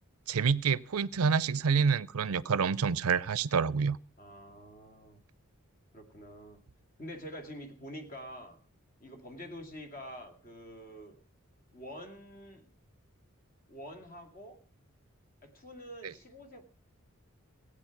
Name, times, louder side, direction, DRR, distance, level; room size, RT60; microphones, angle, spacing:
voice 1, 0.3-4.0 16.0-16.1, right 5 dB, 85° right, 0.5 m, -27 dB
voice 2, 4.2-5.2 5.9-6.6 7.0-8.6 9.0-11.2 11.7-12.7 13.7-14.6 15.4-16.6, equal, 40° left, 2.4 m, -46 dB
17.0 x 8.6 x 5.9 m
head